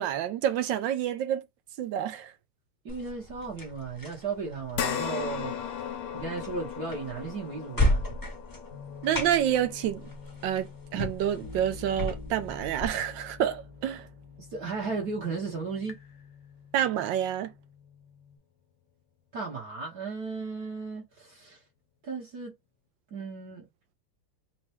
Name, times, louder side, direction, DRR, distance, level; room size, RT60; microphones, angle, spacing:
voice 1, 0.0-1.5 1.8-2.3 9.0-10.1 10.4-14.1 16.7-17.5, right 10 dB, 70° right, 1.2 m, -28 dB
voice 2, 2.8-5.6 6.1-8.0 14.4-16.0 19.3-21.6 22.0-22.5 23.1-23.6, right 4 dB, 55° right, 1.4 m, -35 dB
sound 1, 2.9-12.9, left 1 dB, 15° left, 0.7 m, -34 dB
sound 2, 4.7-13.4 13.8-13.9 15.4-15.5, left 8 dB, 80° left, 1.5 m, -38 dB
sound 3, 8.7-18.4, left 5 dB, 60° left, 0.9 m, -47 dB
4.2 x 2.2 x 3.1 m
omnidirectional pair, 2.4 m